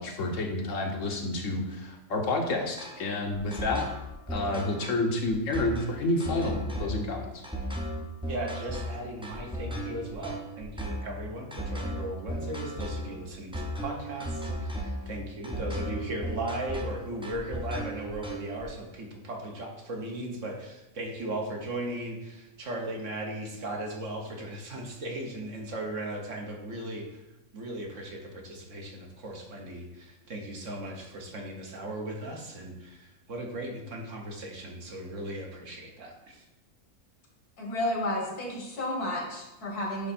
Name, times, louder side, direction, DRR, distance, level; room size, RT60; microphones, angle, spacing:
voice 1, 0.0-3.9 4.3-7.4, left 2 dB, 60° left, 2 dB, 1.2 m, -29 dB
sound 1, 2.8-18.6, equal, 5° right, 0.6 m, -36 dB
voice 2, 8.3-27.2 27.5-36.4, right 1 dB, 55° right, 1 dB, 1.4 m, -37 dB
voice 3, 37.6-40.1, left 1 dB, 80° left, -1 dB, 2.2 m, -31 dB
9.8 x 3.3 x 4.2 m, 0.96 s
omnidirectional pair, 1.6 m